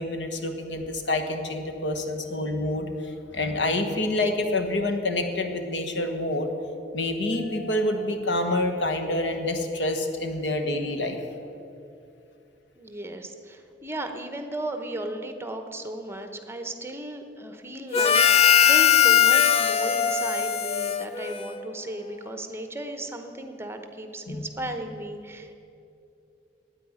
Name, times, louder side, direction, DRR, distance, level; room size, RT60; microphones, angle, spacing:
voice 1, 0.0-6.5 6.9-11.2 24.3-24.7, left 1 dB, 85° left, 5 dB, 1.3 m, -27 dB
voice 2, 12.8-25.5, right 1 dB, 15° right, 6 dB, 0.9 m, -35 dB
Harmonica, 17.9-21.7, left 8 dB, 35° left, 0.4 m, -20 dB
9.8 x 8.9 x 10.0 m, 2.7 s
head